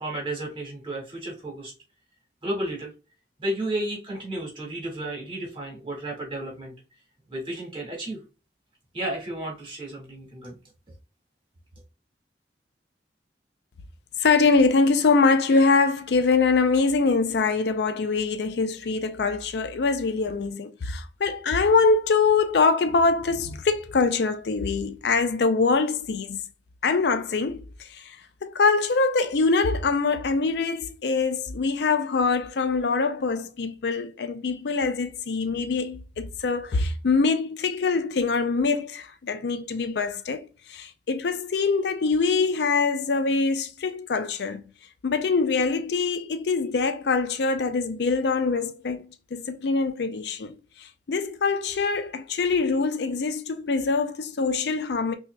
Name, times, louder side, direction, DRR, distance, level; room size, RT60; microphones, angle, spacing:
voice 1, 0.0-1.7 2.4-2.9 3.4-6.7 7.3-8.2 8.9-10.6, right 1 dB, 30° right, 1.9 m, -32 dB
voice 2, 14.2-26.4 26.8-28.2 28.4-44.6 45.0-55.1, left 4 dB, 70° left, 0.5 m, -24 dB
5.7 x 2.7 x 2.2 m
head